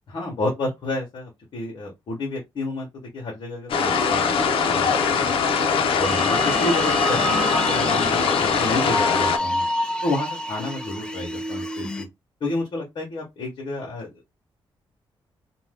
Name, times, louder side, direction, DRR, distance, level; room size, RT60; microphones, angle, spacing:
voice 1, 0.1-2.9 3.1-5.3 5.9-9.7 10.0-12.1 12.4-14.1, left 2 dB, 60° left, 1.0 m, -30 dB
sound 1, 3.7-9.4, left 5 dB, 80° left, 0.5 m, -21 dB
sound 2, 6.0-12.0, equal, 10° left, 0.4 m, -28 dB
2.6 x 2.2 x 3.4 m
wide cardioid pair, 150°, 9 cm